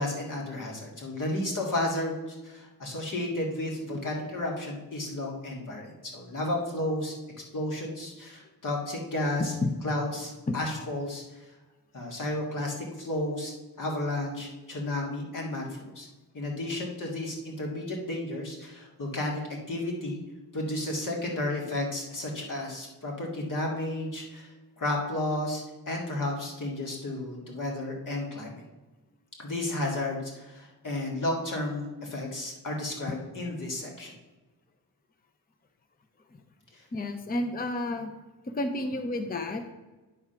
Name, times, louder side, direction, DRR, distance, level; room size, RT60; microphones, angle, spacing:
voice 1, 0.0-7.1 7.5-9.5 9.8-11.5 11.9-16.1 16.3-19.4 19.7-20.2 20.5-28.6 29.4-34.1 36.7-36.8, left 1 dB, 50° left, -1 dB, 1.9 m, -32 dB
voice 2, 36.9-38.1 38.5-39.7, left 2 dB, 25° left, 6 dB, 0.6 m, -30 dB
9.7 x 3.6 x 5.6 m, 1.1 s
wide cardioid pair, 170°, 39 cm